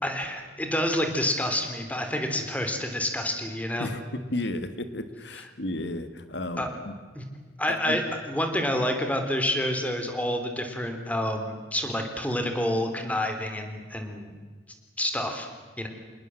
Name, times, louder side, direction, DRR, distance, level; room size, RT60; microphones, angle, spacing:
voice 1, 0.0-3.9 6.6-6.7 7.1-7.2 7.6-14.3 15.0-15.5 15.8-15.9, left 1 dB, 10° left, 5 dB, 3.4 m, -28 dB
voice 2, 3.8-7.0 7.7-8.0, left 1 dB, 80° left, 10 dB, 1.6 m, -33 dB
27.5 x 19.5 x 7.7 m, 1.4 s
head